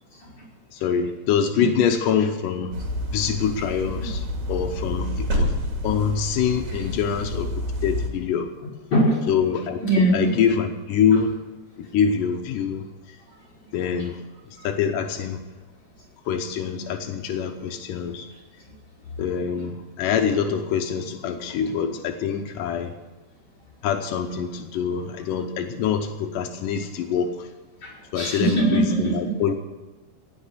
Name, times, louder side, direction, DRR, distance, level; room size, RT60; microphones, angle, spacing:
voice 1, 0.7-2.7 3.1-4.2 4.5-5.5 5.8-8.5 9.3-9.8 10.1-11.3 11.8-12.8 13.7-14.2 14.6-15.4 16.3-18.3 19.2-22.9 23.8-27.3 28.1-29.5, left 7 dB, 80° left, 4 dB, 1.9 m, -25 dB
sound 1, 2.7-8.1, left 1 dB, 50° right, 3.4 m, -28 dB
voice 2, 8.9-9.3 9.8-10.2 27.8-29.3, right 1 dB, 25° left, -3 dB, 5.8 m, -21 dB
17.5 x 6.5 x 8.3 m, 1.3 s
omnidirectional pair, 4.9 m